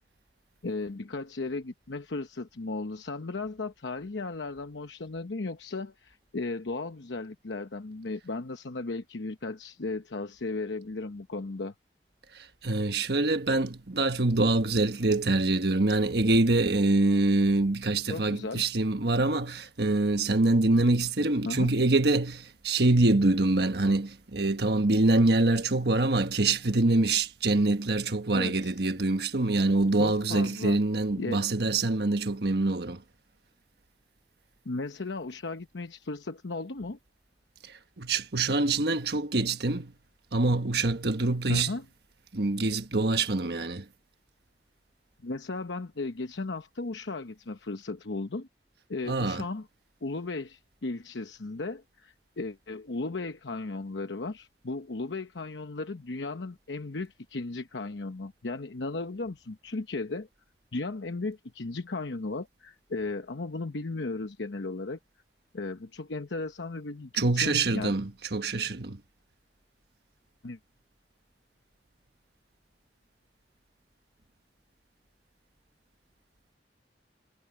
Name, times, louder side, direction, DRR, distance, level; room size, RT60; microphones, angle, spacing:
voice 1, 0.6-11.7 18.1-18.6 21.4-21.7 28.3-28.7 30.0-30.8 31.2-31.4 34.6-37.0 41.5-41.8 45.2-48.5 48.9-49.7 50.0-60.3 60.7-65.0 65.5-68.0 70.4-70.6, left 3 dB, 90° left, 0.9 m, -35 dB
voice 2, 12.3-33.0 37.7-39.9 40.3-41.7 42.3-43.8 49.1-49.4 67.1-69.0, right 2 dB, 65° right, 1.4 m, -25 dB
head